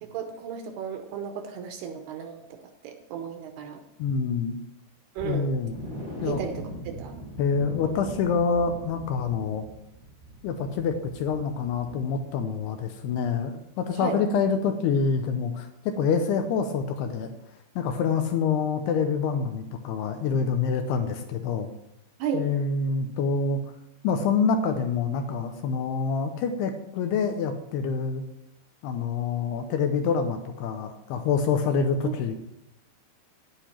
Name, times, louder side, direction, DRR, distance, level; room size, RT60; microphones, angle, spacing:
voice 1, 0.0-2.6 2.8-3.8 5.2-5.5 6.3-7.2 14.0-14.2 22.2-22.5 32.0-32.1, right 7 dB, 75° right, 5 dB, 2.5 m, -34 dB
voice 2, 4.0-4.6 5.2-5.8 6.2-6.4 7.4-9.7 10.4-17.3 17.8-21.7 22.3-23.7 24.0-28.2 28.8-32.4, left 5 dB, 80° left, 7 dB, 2.4 m, -26 dB
sound 1, 5.2-12.9 13.2-13.4 13.8-13.9, equal, 45° right, 0.8 m, -41 dB
10.5 x 10.0 x 4.4 m, 0.87 s
omnidirectional pair, 5.5 m